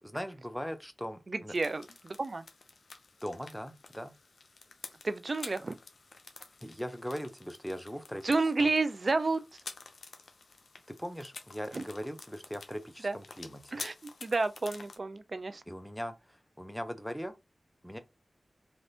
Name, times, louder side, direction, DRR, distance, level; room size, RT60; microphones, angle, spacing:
voice 1, 0.0-1.5 3.2-4.1 6.6-8.2 8.6-8.7 10.9-13.8 15.7-17.3 17.8-18.0, equal, 5° left, 0.7 m, -40 dB
voice 2, 1.3-2.4 5.0-5.8 8.2-9.4 11.7-11.8 13.0-13.2 13.7-15.6, right 3 dB, 55° right, 0.4 m, -30 dB
sound 1, 1.5-15.0, left 4 dB, 85° left, 0.5 m, -50 dB
3.3 x 2.5 x 2.8 m
cardioid pair, 40°, 0 cm